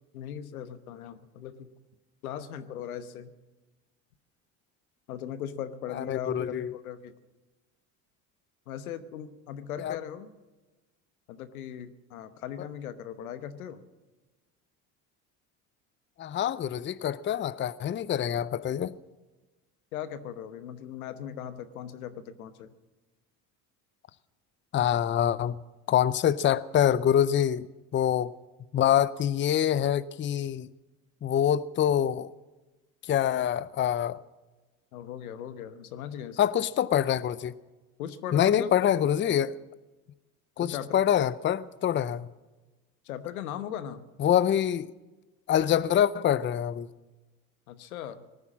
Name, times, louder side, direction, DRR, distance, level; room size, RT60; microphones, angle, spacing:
voice 1, 0.1-1.7 2.2-3.3 5.1-7.1 8.7-10.3 11.3-13.8 19.9-22.7 34.9-36.4 38.0-38.7 40.6-41.0 43.0-44.0 47.7-48.2, left 9 dB, 90° left, 1.1 m, -38 dB
voice 2, 6.0-6.7 9.8-10.0 16.2-19.0 24.7-25.6 25.9-27.7 27.9-28.3 28.7-30.7 31.2-32.3 33.1-34.2 36.4-37.5 38.3-39.6 40.6-42.3 44.2-44.9 45.5-46.9, left 10 dB, 30° left, 0.6 m, -25 dB
19.0 x 9.7 x 7.3 m
hypercardioid pair, 75°, 42 cm